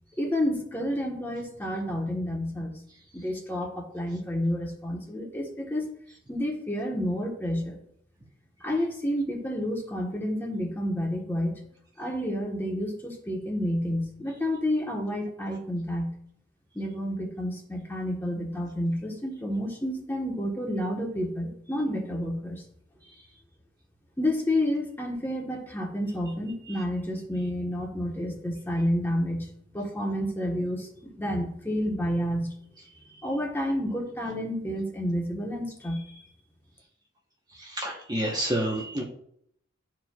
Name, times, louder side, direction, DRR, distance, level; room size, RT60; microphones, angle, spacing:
voice 1, 0.2-2.8 3.1-5.9 6.3-7.8 8.6-11.6 12.0-16.1 16.7-22.6 24.2-29.5 29.7-32.6 33.2-36.2, equal, 10° left, -1 dB, 1.2 m, -30 dB
voice 2, 37.5-39.0, right 1 dB, 20° right, -1 dB, 1.0 m, -29 dB
12.5 x 4.5 x 2.3 m, 0.68 s
head